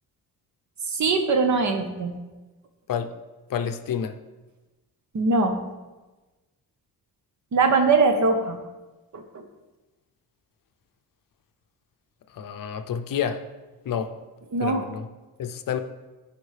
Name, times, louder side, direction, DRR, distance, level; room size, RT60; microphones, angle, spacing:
voice 1, 0.9-2.1 5.1-5.6 7.5-8.6 9.1-9.4 14.5-14.8, right 3 dB, 50° right, 5 dB, 1.0 m, -21 dB
voice 2, 3.5-4.2 12.4-13.4 13.9-14.1 14.6-15.1 15.4-15.8, left 8 dB, 60° left, 8 dB, 0.6 m, -29 dB
14.5 x 5.2 x 3.3 m, 1.2 s
wide cardioid pair, 165°, 38 cm